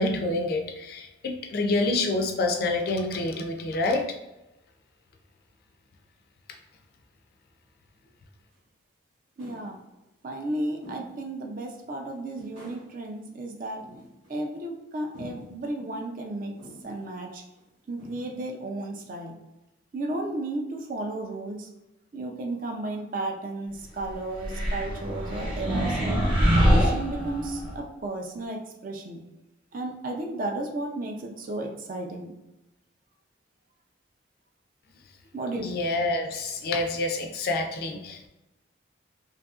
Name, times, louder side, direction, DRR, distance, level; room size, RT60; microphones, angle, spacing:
voice 1, 0.0-4.1 35.5-38.3, left 2 dB, 50° left, 4 dB, 0.3 m, -27 dB
sound 1, 8.5-8.6 9.4-9.8 10.8-11.2 11.6-11.7 12.3-12.9 13.8-14.4 15.1-15.6 16.6-17.0 17.6-17.7 18.0-18.4, equal, 75° right, 1.0 m, -46 dB
voice 2, 9.4-9.8 10.2-13.8 14.3-16.5 16.8-17.4 17.9-19.4 19.9-21.7 22.1-26.0 26.6-29.2 29.7-32.3 35.3-35.7, right 2 dB, 45° right, 2 dB, 0.4 m, -33 dB
sound 2, 24.4-27.7, equal, 25° right, 0.8 m, -24 dB
2.7 x 2.4 x 2.3 m, 0.97 s
head